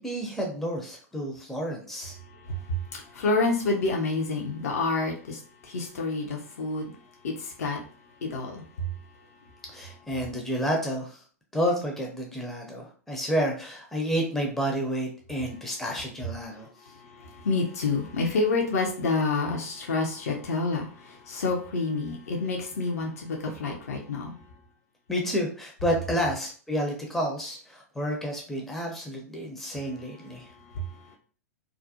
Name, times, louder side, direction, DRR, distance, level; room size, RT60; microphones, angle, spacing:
voice 1, 0.0-2.2 9.7-11.2 11.5-16.7 25.1-30.5, equal, 5° left, 0 dB, 0.5 m, -30 dB
voice 2, 2.3-6.9 7.2-7.8 8.2-8.9 16.8-24.4 30.5-31.2, left 3 dB, 65° left, 1 dB, 0.6 m, -29 dB
2.4 x 2.0 x 2.6 m, 0.42 s
figure-of-eight pair, 100°, 9 cm